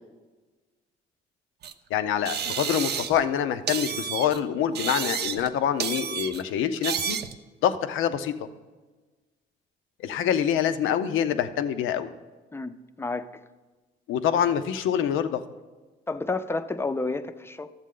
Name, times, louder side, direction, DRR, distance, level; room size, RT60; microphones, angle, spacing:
sound 1, 1.6-1.7 2.2-3.3 3.7-4.4 4.7-5.5 5.8-6.4 6.8-7.4, right 8 dB, 55° right, 0.5 m, -30 dB
voice 1, 1.9-7.2 7.6-8.3 10.0-12.1 14.1-15.4, left 9 dB, 85° left, 0.6 m, -25 dB
voice 2, 12.5-13.4 16.1-17.7, left 3 dB, 10° left, 0.5 m, -31 dB
12.5 x 7.4 x 3.7 m
cardioid pair, 90°, 20 cm